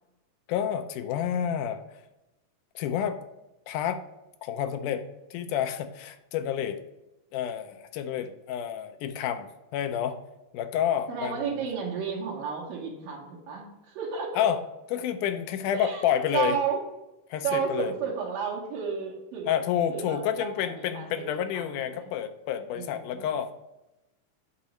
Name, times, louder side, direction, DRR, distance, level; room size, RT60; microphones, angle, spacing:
voice 1, 0.5-1.8 2.8-3.2 3.7-4.0 4.4-5.0 5.3-6.8 7.3-10.2 10.5-11.5 14.4-14.6 14.9-16.6 17.3-17.9 19.5-23.5, left 9 dB, 80° left, 8 dB, 2.0 m, -29 dB
voice 2, 11.1-14.5 15.7-16.0 16.3-16.8 17.4-19.5 19.9-22.1 22.7-23.3, right 6 dB, 80° right, -5 dB, 2.9 m, -32 dB
8.4 x 3.0 x 6.3 m, 0.96 s
omnidirectional pair, 3.8 m